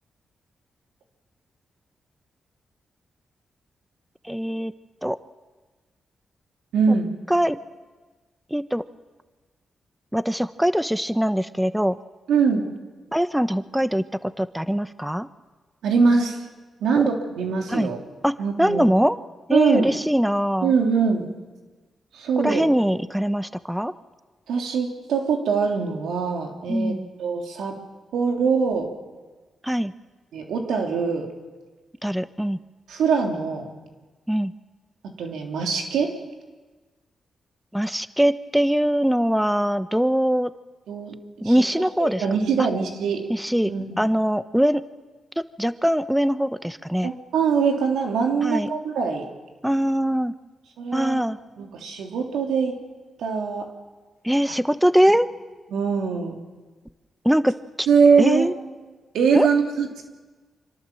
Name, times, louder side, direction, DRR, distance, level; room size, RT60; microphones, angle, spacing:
voice 1, 4.2-4.7 5.0-5.2 7.3-7.6 8.5-8.8 10.1-12.0 13.1-15.3 16.9-17.0 17.7-17.9 18.2-18.3 18.6-19.2 19.5-20.7 22.4-23.9 26.7-27.0 29.6-29.9 32.0-32.6 34.3-34.5 37.7-40.5 41.4-42.2 43.3-44.8 45.6-47.1 48.4-48.7 49.6-50.3 50.9-51.4 54.2-55.3 57.2-57.9 58.2-58.5 59.3-59.5, equal, 5° right, 12 dB, 0.9 m, -22 dB
voice 2, 6.7-7.1 12.3-12.7 15.8-16.4 16.8-18.0 18.4-18.9 19.5-19.9 20.6-21.3 22.1-22.7 24.5-27.8 28.1-28.9 30.3-31.3 32.9-33.7 35.0-36.1 40.9-41.1 41.4-43.2 43.7-44.0 47.0-49.3 50.8-51.2 51.6-52.8 53.2-53.7 55.7-56.4 57.9-58.5 59.1-60.0, right 5 dB, 90° right, 2 dB, 3.4 m, -23 dB
26.0 x 24.5 x 7.8 m, 1.3 s
cardioid pair, 60°, 0 cm